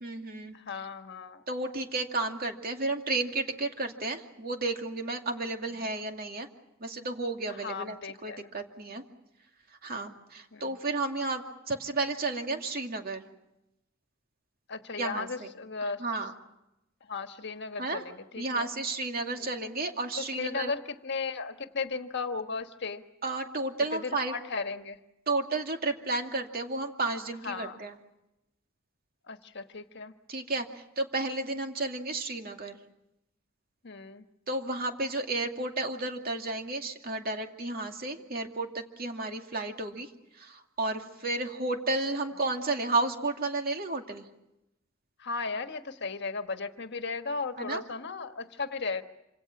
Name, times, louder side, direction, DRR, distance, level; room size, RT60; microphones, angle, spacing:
voice 1, 0.0-0.5 1.5-6.5 6.8-9.0 9.8-13.2 14.9-15.5 16.0-16.3 17.8-18.0 18.4-20.7 23.2-24.4 25.3-28.0 30.3-32.8 34.5-44.2 47.6-47.8, right 2 dB, 50° right, 4 dB, 2.4 m, -32 dB
voice 2, 0.5-1.4 7.6-8.5 10.5-10.7 14.7-16.0 17.1-18.7 19.4-19.5 20.2-23.0 23.9-25.0 27.4-27.8 29.3-30.1 33.8-34.2 45.2-49.0, left 4 dB, 60° left, 8 dB, 1.4 m, -36 dB
27.0 x 26.5 x 6.0 m, 0.90 s
head